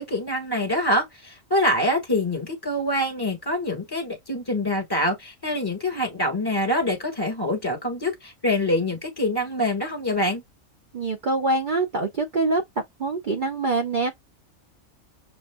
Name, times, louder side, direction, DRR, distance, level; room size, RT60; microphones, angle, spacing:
voice 1, 0.0-10.4, left 1 dB, 20° left, 1.5 m, -25 dB
voice 2, 10.9-12.6 13.0-14.1, right 3 dB, 45° right, 0.7 m, -24 dB
7.0 x 2.3 x 2.2 m
omnidirectional pair, 1.4 m